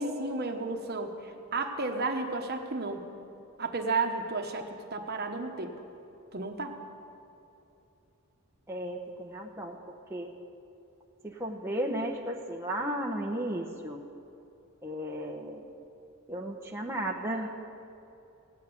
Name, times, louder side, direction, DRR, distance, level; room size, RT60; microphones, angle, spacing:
voice 1, 0.0-3.0 3.6-5.7 6.3-6.8, right 3 dB, 45° right, 4 dB, 1.2 m, -32 dB
voice 2, 8.7-9.8 10.1-10.3 11.2-14.0 14.8-15.6 16.3-17.5, right 1 dB, 10° right, -1 dB, 0.9 m, -34 dB
16.5 x 9.0 x 9.6 m, 2.9 s
head